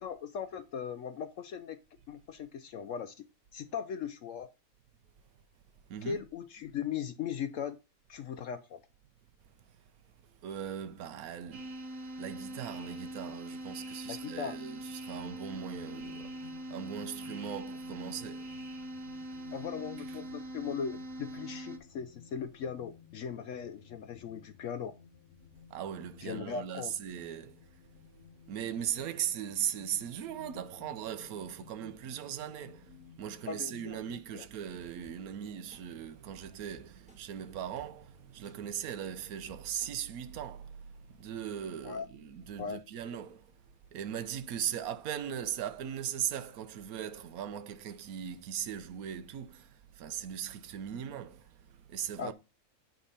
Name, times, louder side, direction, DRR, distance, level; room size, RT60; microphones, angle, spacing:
voice 1, 0.0-1.8 2.1-3.2 3.5-4.5 6.0-7.8 8.1-8.8 14.1-14.5 19.5-24.9 26.2-26.9 33.5-34.0 34.3-34.5 41.8-42.1 42.6-42.8 52.2-52.3, left 7 dB, 65° left, 0.9 m, -38 dB
voice 2, 5.9-6.2 10.4-11.8 12.2-18.5 25.7-27.6 28.5-43.5 43.9-52.3, right 9 dB, 80° right, 1.2 m, -39 dB
sound 1, 11.5-21.8, right 1 dB, 60° right, 1.5 m, -42 dB
sound 2, 15.1-34.2, left 7 dB, 85° left, 1.3 m, -56 dB
sound 3, 35.0-35.1 35.7-35.8 36.7-37.2 37.8-37.9 38.4-38.6 39.1-39.2 39.5-39.9 40.3-40.4, equal, 5° right, 1.6 m, -57 dB
10.5 x 3.5 x 5.5 m
omnidirectional pair, 1.5 m